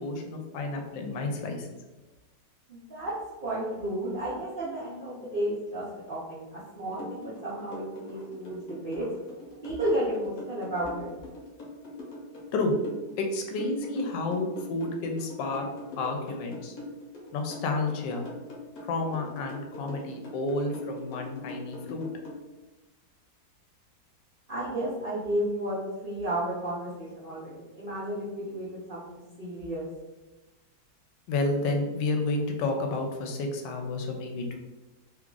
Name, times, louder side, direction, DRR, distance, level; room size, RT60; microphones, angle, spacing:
voice 1, 0.0-1.7 12.5-12.7 13.2-15.7 16.0-16.7 17.3-18.2 18.9-22.1 31.3-34.6, left 2 dB, 85° left, 3 dB, 1.3 m, -30 dB
voice 2, 2.7-3.1 3.4-9.1 9.6-11.1 24.5-29.8, right 1 dB, 75° right, -8 dB, 0.4 m, -32 dB
sound 1, 7.0-22.4, left 1 dB, 60° left, 1.2 m, -42 dB
3.0 x 2.4 x 3.7 m, 1.1 s
omnidirectional pair, 1.9 m